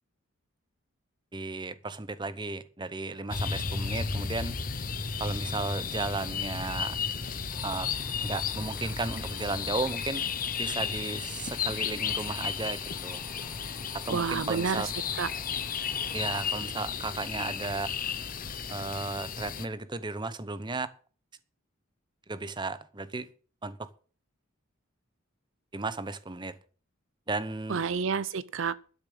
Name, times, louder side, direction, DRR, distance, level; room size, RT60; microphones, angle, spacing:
voice 1, 1.3-4.6 5.2-7.0 7.6-7.9 8.2-10.3 10.6-13.2 13.9-14.9 16.1-17.9 18.7-20.9 22.3-23.3 23.6-23.9 25.7-26.6 27.3-27.8, right 3 dB, 20° right, 0.8 m, -34 dB
sound 1, 3.3-19.7, left 6 dB, 40° left, 0.9 m, -34 dB
sound 2, 7.5-16.5, left 4 dB, 20° left, 2.5 m, -48 dB
voice 2, 14.1-14.9 15.2-15.3 27.7-28.7, right 5 dB, 60° right, 0.6 m, -29 dB
12.0 x 6.7 x 7.6 m
head